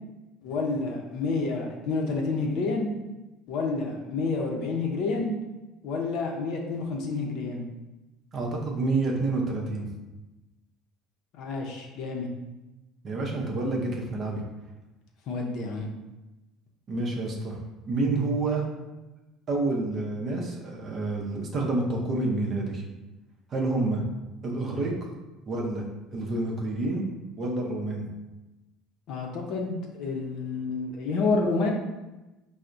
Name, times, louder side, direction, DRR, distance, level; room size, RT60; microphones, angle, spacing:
voice 1, 0.4-2.9 3.5-5.3 5.8-7.6 11.3-12.3 15.3-15.9 29.1-31.7, left 3 dB, 60° left, 1 dB, 0.6 m, -29 dB
voice 2, 8.3-9.9 13.0-14.4 16.9-17.6 17.9-18.7 19.5-22.8 23.5-24.0 24.4-25.1 25.5-27.0 27.4-28.0, right 2 dB, 35° right, -1 dB, 0.6 m, -28 dB
5.6 x 2.0 x 2.5 m, 1.1 s
cardioid pair, 155°, 0 cm